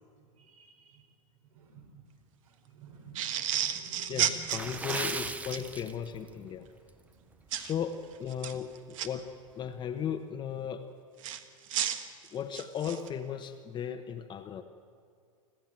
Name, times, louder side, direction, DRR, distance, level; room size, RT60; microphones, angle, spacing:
voice 1, 0.4-1.0 1.5-2.0 2.5-4.4 4.6-4.8, right 5 dB, 80° right, 3 dB, 4.5 m, -51 dB
sound 1, 3.1-5.6 7.5-7.7 8.3-9.1 11.2-13.1, right 10 dB, 65° right, 1.5 m, -32 dB
voice 2, 4.1-6.7 7.5-10.9 12.3-14.6, left 8 dB, 25° left, 5 dB, 1.0 m, -36 dB
Water / Splash splatter, 4.4-6.4 6.7-6.9 7.5-7.7 8.1-8.2, right 3 dB, 10° right, 0.6 m, -37 dB
25.5 x 14.5 x 9.0 m, 2.2 s
hypercardioid pair, 130°, 18 cm